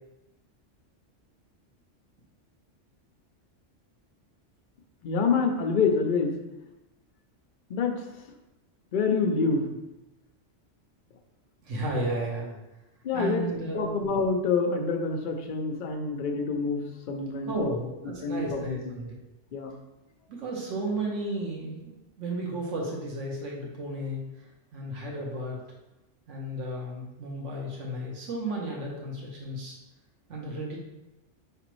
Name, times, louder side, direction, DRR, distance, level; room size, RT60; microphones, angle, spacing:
voice 1, 5.0-6.3 7.7-8.0 8.9-9.8 13.0-13.4 13.7-16.8 17.1-17.7 18.2-18.6 19.5-19.7, left 4 dB, 55° left, 3 dB, 0.6 m, -26 dB
voice 2, 11.6-12.6 13.1-14.0 17.5-19.1 20.3-25.6 26.3-29.8 30.3-30.8, right 1 dB, 75° right, -2 dB, 1.2 m, -33 dB
4.9 x 3.3 x 3.0 m, 1.0 s
omnidirectional pair, 1.3 m